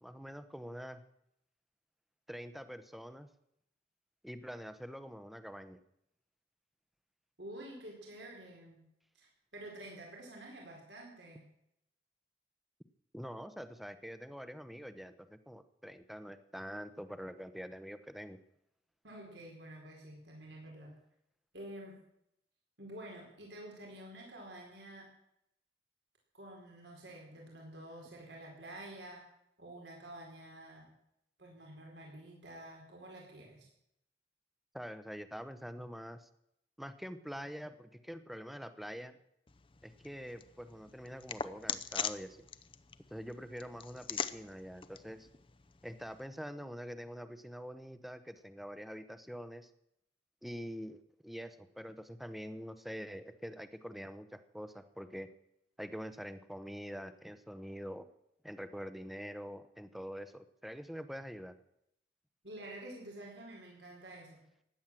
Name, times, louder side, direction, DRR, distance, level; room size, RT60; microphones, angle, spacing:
voice 1, 0.0-1.0 2.3-3.3 4.2-5.8 13.1-18.4 34.7-36.3 36.8-39.2 39.8-42.4 43.1-45.3 45.8-49.7 50.4-55.3 55.8-58.1 58.4-61.6, equal, ahead, 11 dB, 0.8 m, -45 dB
voice 2, 7.4-8.8 9.1-11.4 19.0-21.0 21.5-21.9 22.8-25.1 26.3-29.2 29.6-30.9 31.4-33.7 62.4-64.4, right 1 dB, 85° right, 0 dB, 4.5 m, -49 dB
sound 1, 39.5-46.3, left 7 dB, 30° left, 0.6 m, -43 dB
16.0 x 10.5 x 7.6 m, 0.78 s
head